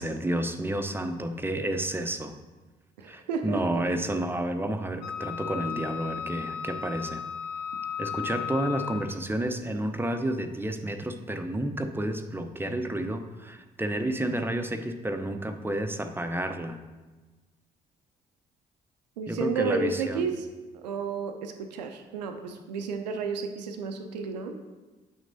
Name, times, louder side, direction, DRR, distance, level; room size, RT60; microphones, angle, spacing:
voice 1, 0.0-2.4 3.0-7.3 8.0-16.8 19.3-20.3, right 1 dB, 10° right, 7 dB, 0.7 m, -30 dB
voice 2, 3.0-3.6 19.2-20.5 20.8-24.5, right 5 dB, 85° right, 6 dB, 0.5 m, -31 dB
Wind instrument woodwind instrument, 5.0-9.2, left 8 dB, 80° left, 0.6 m, -35 dB
8.8 x 6.0 x 2.7 m, 1.2 s
figure-of-eight pair, 40°, 21 cm